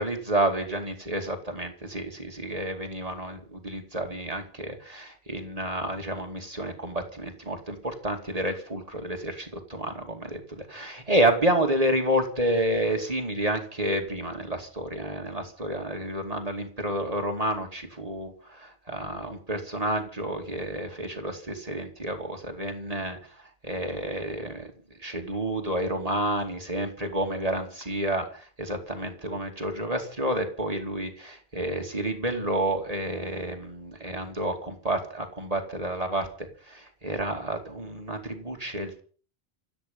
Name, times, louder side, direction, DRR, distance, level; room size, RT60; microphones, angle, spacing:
voice 1, 0.0-23.2 23.6-24.7 25.0-39.0, right 1 dB, 35° right, 4 dB, 2.7 m, -30 dB
27.5 x 9.2 x 5.5 m, 0.42 s
omnidirectional pair, 1.1 m